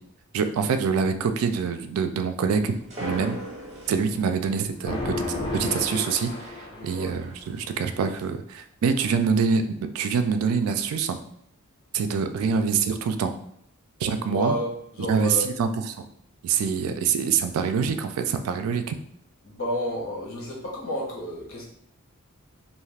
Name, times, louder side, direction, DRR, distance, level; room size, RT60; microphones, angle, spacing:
voice 1, 0.3-2.7 3.0-3.4 3.9-5.3 5.5-6.5 6.8-9.7 9.9-11.2 11.9-13.3 14.0-14.5 15.1-15.7 16.4-19.0, right 6 dB, 80° right, 8 dB, 0.3 m, -25 dB
sound 1, 2.5-8.3, equal, 30° right, 0.7 m, -42 dB
sound 2, 4.8-7.2, left 2 dB, 25° left, 0.4 m, -32 dB
voice 2, 6.7-7.2 14.3-15.4 19.4-21.6, equal, 75° left, -4 dB, 1.1 m, -31 dB
2.6 x 2.3 x 3.2 m, 0.70 s
head